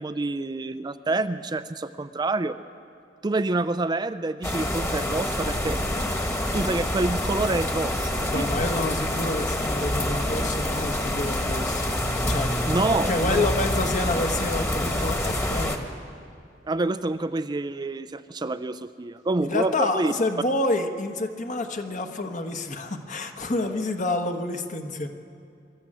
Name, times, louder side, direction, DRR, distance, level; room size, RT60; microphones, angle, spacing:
voice 1, 0.0-2.6 3.2-5.8 6.5-8.5 12.7-13.5 16.6-20.1, right 2 dB, 25° right, 10 dB, 0.4 m, -27 dB
sound 1, 4.4-15.8, left 1 dB, 15° left, 1.5 m, -27 dB
voice 2, 8.3-11.8 12.2-12.8 13.1-15.9 19.4-25.1, left 2 dB, 45° left, 6 dB, 1.3 m, -28 dB
24.0 x 12.5 x 8.8 m, 2.5 s
head